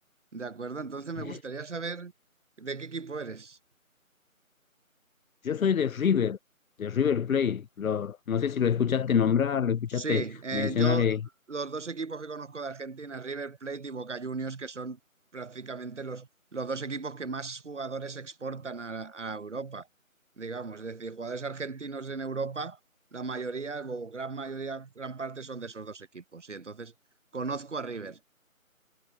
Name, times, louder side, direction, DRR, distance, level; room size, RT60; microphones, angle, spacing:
voice 1, 0.3-2.1 2.6-3.6 9.9-11.1 11.5-15.0 15.3-19.9 20.4-22.8 23.1-26.9 27.3-28.2, right 4 dB, 55° right, 0.9 m, -36 dB
voice 2, 5.4-6.4 6.8-10.2 10.5-11.2, left 7 dB, 75° left, 0.5 m, -26 dB
figure-of-eight pair, 165°, 42 cm